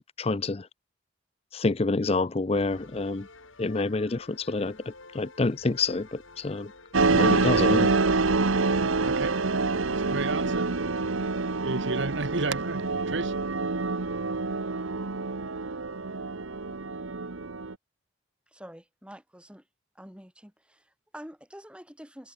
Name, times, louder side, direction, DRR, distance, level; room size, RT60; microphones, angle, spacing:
voice 1, 0.2-0.7 1.5-3.3 3.6-4.8 5.1-6.7 7.1-7.9, left 3 dB, 30° left, 0.5 m, -27 dB
sound 1, 2.5-11.3, left 2 dB, 80° left, 5.5 m, -51 dB
sound 2, 6.9-17.7, right 3 dB, 85° right, 1.1 m, -26 dB
voice 2, 10.1-10.7 11.6-12.8 13.1-13.3, right 3 dB, 65° right, 1.5 m, -31 dB
voice 3, 18.5-19.7 19.9-22.3, equal, 5° right, 6.0 m, -47 dB
head